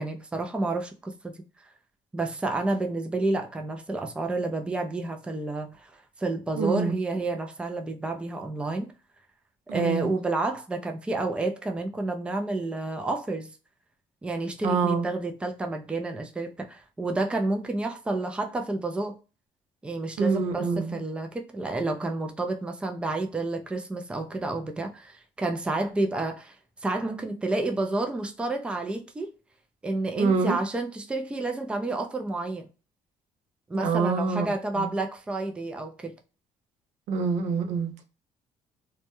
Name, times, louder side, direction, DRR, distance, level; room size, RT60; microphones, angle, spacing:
voice 1, 0.0-1.3 2.1-5.9 6.2-8.9 9.7-13.5 14.2-19.2 19.8-26.6 26.8-29.3 29.8-32.7 33.7-36.1, right 2 dB, 10° right, 0.3 m, -30 dB
voice 2, 6.6-7.0 9.7-10.1 14.6-15.1 20.2-21.0 30.2-30.6 33.7-34.5 34.7-34.9 37.1-38.0, right 4 dB, 90° right, 0.5 m, -26 dB
2.2 x 2.0 x 2.9 m
cardioid pair, 115°, 12 cm